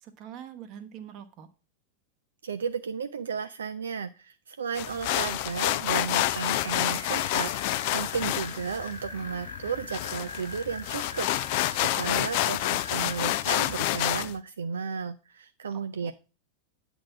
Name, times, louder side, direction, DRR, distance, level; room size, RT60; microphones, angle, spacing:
voice 1, 0.0-1.5 15.7-16.1, right 9 dB, 40° right, 8 dB, 1.0 m, -44 dB
voice 2, 2.4-16.1, right 6 dB, 70° right, 10 dB, 0.4 m, -34 dB
sound 1, 4.7-14.3, left 15 dB, 45° left, 0.4 m, -29 dB
sound 2, 5.6-13.4, left 2 dB, 80° left, 1.0 m, -42 dB
8.6 x 3.9 x 5.9 m, 0.32 s
figure-of-eight pair, 90°, 0 cm